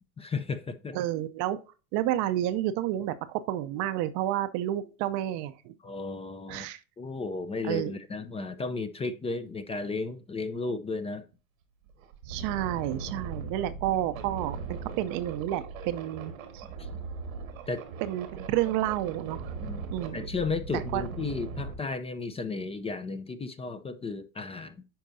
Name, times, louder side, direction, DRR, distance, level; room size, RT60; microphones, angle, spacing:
voice 1, 0.2-1.0 5.8-6.7 7.0-11.2 16.8-17.0 17.7-17.8 19.6-19.9 20.1-24.8, left 3 dB, 15° left, 0.6 m, -34 dB
voice 2, 0.9-1.6 1.9-5.7 6.5-6.8 7.6-7.9 12.3-16.6 18.0-19.4 19.9-20.3 20.7-21.0, right 13 dB, 50° right, 0.7 m, -30 dB
sound 1, 11.3-11.4 11.9-21.7, right 4 dB, 85° right, 1.6 m, -39 dB
10.0 x 4.5 x 2.7 m
hypercardioid pair, 105°, 40 cm